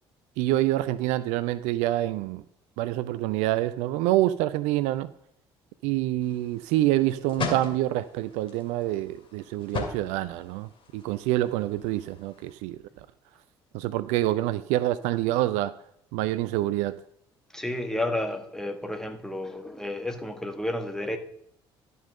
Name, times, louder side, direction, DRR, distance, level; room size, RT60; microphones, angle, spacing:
voice 1, 0.4-2.4 2.8-5.1 5.8-12.8 13.7-15.7 16.1-17.0, right 15 dB, 60° right, 0.4 m, -26 dB
sound 1, 6.2-12.5, left 4 dB, 40° left, 2.3 m, -39 dB
voice 2, 17.5-21.2, left 1 dB, 5° left, 1.4 m, -31 dB
11.5 x 5.4 x 6.5 m
figure-of-eight pair, 55°, 14 cm